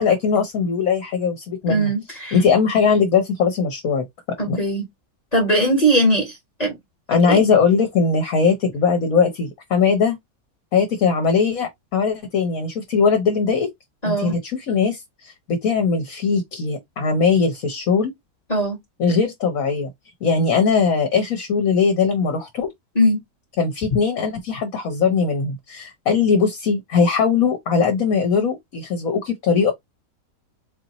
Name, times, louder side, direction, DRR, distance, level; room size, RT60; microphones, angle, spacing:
voice 1, 0.0-1.9 2.3-4.0 4.5-4.6 7.1-10.2 10.7-13.7 14.1-18.1 19.0-19.9 20.2-22.7 23.6-29.7, left 5 dB, 60° left, 1.3 m, -20 dB
voice 2, 1.7-2.4 4.4-4.8 5.3-6.7 7.3-7.4 14.0-14.4 18.5-18.8 22.9-23.2, right 1 dB, 25° left, 1.5 m, -20 dB
4.2 x 2.8 x 2.9 m
omnidirectional pair, 1.7 m